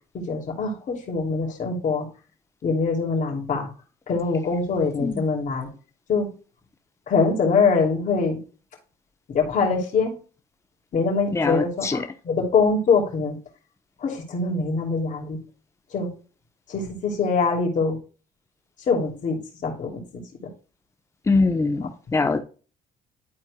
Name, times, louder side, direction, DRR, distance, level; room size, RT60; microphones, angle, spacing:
voice 1, 0.1-2.0 2.6-3.7 4.1-5.7 6.1-6.3 7.1-8.4 9.3-10.1 10.9-13.3 14.0-15.4 15.9-16.1 16.7-18.0 18.9-19.4 19.6-20.0, left 4 dB, 50° left, 2.9 m, -23 dB
voice 2, 11.3-12.0 21.3-22.4, left 3 dB, 15° left, 0.9 m, -22 dB
12.0 x 4.4 x 2.3 m
cardioid pair, 110°, 17 cm